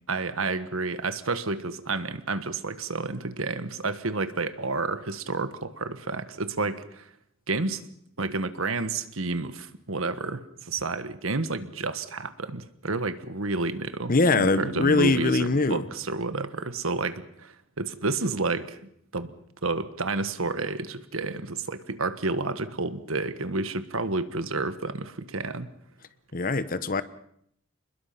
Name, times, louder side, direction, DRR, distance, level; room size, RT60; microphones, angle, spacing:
voice 1, 0.1-7.1 7.5-7.8 8.2-18.8 19.1-19.3 19.6-25.7, right 3 dB, 75° right, 1.5 m, -30 dB
voice 2, 14.1-15.8 26.3-27.0, left 3 dB, 40° left, 1.0 m, -22 dB
27.5 x 21.0 x 5.9 m
head